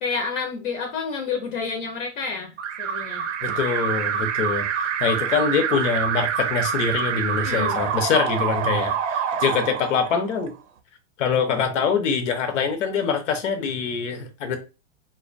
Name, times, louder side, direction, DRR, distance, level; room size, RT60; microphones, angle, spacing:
voice 1, 0.0-2.5 2.8-3.3 7.4-7.8, left 5 dB, 45° left, 0.6 m, -29 dB
Alarm, 2.6-10.5, right 8 dB, 80° right, 0.5 m, -26 dB
voice 2, 3.4-10.5 11.2-14.6, left 5 dB, 80° left, 0.8 m, -24 dB
2.5 x 2.1 x 2.5 m
supercardioid pair, 155°, 36 cm